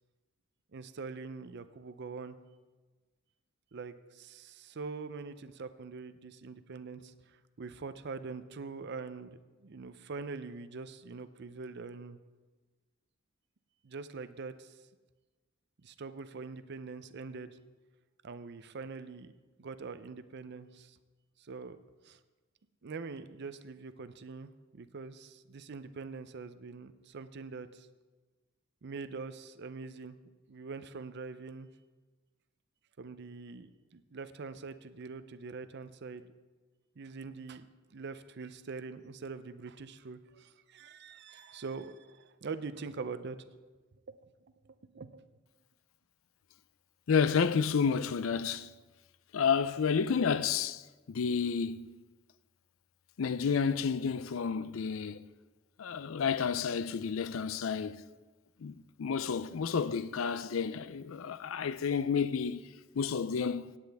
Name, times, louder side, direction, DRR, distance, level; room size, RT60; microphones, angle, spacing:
voice 1, 0.7-2.4 3.7-12.2 13.8-14.8 15.8-17.6 18.2-19.3 19.6-21.0 21.4-21.8 22.0-22.2 22.8-27.9 28.8-30.2 30.5-31.7 33.0-36.3 37.0-43.4 44.1-44.2 44.6-45.3, right 4 dB, 55° right, 0.5 m, -44 dB
voice 2, 47.1-48.7 49.3-50.8 51.1-51.9 53.2-55.3 55.8-58.0 58.6-62.7 62.9-63.7, left 6 dB, 80° left, 0.4 m, -30 dB
17.5 x 8.6 x 3.5 m
head